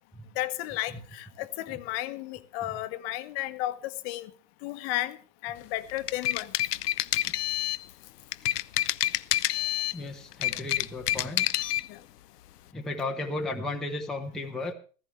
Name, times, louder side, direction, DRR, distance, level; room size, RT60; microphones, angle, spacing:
voice 1, 0.4-4.3 4.6-5.2 5.4-6.5 11.9-12.0, left 15 dB, 40° left, 1.2 m, -33 dB
sound 1, 5.9-7.9 8.3-10.0 10.3-11.9, left 14 dB, 70° left, 0.7 m, -28 dB
voice 2, 9.9-11.6 12.7-14.7, left 2 dB, ahead, 1.0 m, -34 dB
15.5 x 15.0 x 3.2 m
hypercardioid pair, 125°, 49 cm